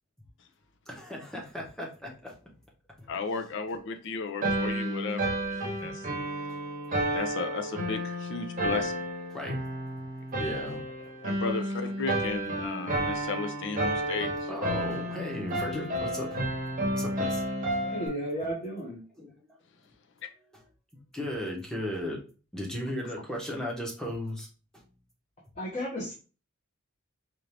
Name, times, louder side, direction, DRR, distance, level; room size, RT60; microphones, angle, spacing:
voice 1, 0.9-2.3 3.0-3.5 5.8-5.9 9.3-9.6 10.4-11.0 14.5-16.4 16.9-17.4 19.2-19.3 21.1-22.2 22.5-24.5, equal, 5° left, 0.9 m, -36 dB
voice 2, 3.1-6.1 7.1-9.0 11.2-14.5 20.2-20.3, left 4 dB, 60° left, 0.6 m, -34 dB
sound 1, 4.4-18.1, right 1 dB, 40° right, 0.8 m, -31 dB
voice 3, 17.8-19.0 25.6-26.1, equal, 35° left, 1.0 m, -33 dB
4.5 x 2.5 x 3.3 m
head